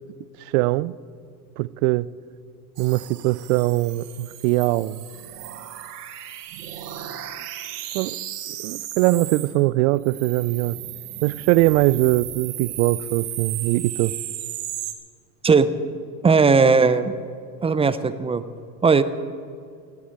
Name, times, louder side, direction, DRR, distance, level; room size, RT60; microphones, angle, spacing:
voice 1, 0.5-0.9 1.6-2.1 2.8-5.0 7.9-8.2 8.6-10.8 11.2-14.1, right 18 dB, 65° right, 21 dB, 0.5 m, -21 dB
sound 1, 2.8-9.6 10.0-14.9, right 12 dB, 80° right, 1.4 m, -35 dB
voice 2, 16.2-17.1 17.6-18.4 18.8-19.0, right 4 dB, 15° right, 13 dB, 0.4 m, -17 dB
18.5 x 8.5 x 7.7 m, 2.3 s
hypercardioid pair, 100°, 46 cm